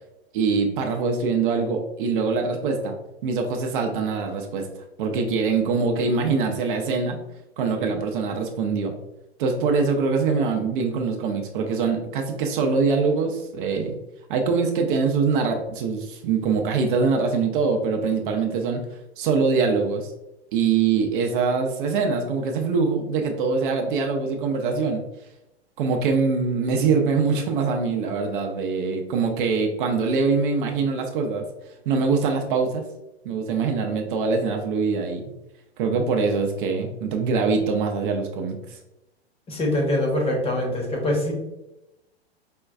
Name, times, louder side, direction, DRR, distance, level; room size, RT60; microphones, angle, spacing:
voice 1, 0.3-3.0 3.2-4.7 5.0-7.2 7.6-8.9 9.4-14.0 14.3-18.8 19.2-20.1 20.5-25.0 25.8-31.4 31.9-32.9 33.2-35.2 35.8-38.8, right 4 dB, 50° right, 3 dB, 0.6 m, -23 dB
voice 2, 39.5-41.3, left 1 dB, 20° left, 0 dB, 0.8 m, -23 dB
5.1 x 2.3 x 2.3 m, 0.93 s
hypercardioid pair, 100°, 32 cm